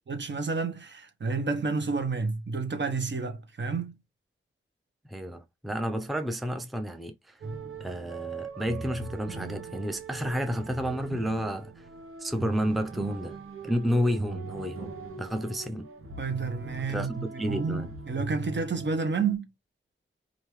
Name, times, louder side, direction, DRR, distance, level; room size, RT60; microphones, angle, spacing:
voice 1, 0.1-3.9 16.2-19.5, right 4 dB, 60° right, 1.1 m, -30 dB
voice 2, 5.1-7.4 7.8-11.9 12.2-13.4 13.6-15.9 16.9-17.9, equal, ahead, 0.5 m, -31 dB
sound 1, 7.4-19.3, right 4 dB, 85° right, 1.0 m, -40 dB
5.1 x 2.7 x 3.2 m
wide cardioid pair, 105°, 21 cm